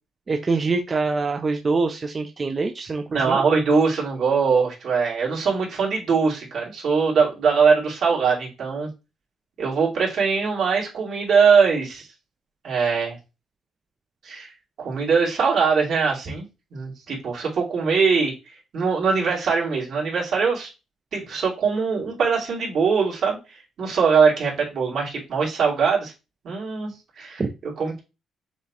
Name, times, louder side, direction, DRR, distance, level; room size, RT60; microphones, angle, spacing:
voice 1, 0.3-3.4 27.4-27.5, right 3 dB, 35° right, 5 dB, 0.5 m, -24 dB
voice 2, 3.1-8.9 9.6-12.1 12.6-13.2 14.2-14.5 14.8-20.7 21.1-26.1 26.4-28.0, right 5 dB, 65° right, -4 dB, 2.5 m, -22 dB
7.0 x 2.4 x 2.8 m, 0.29 s
cardioid pair, 90°, 0 cm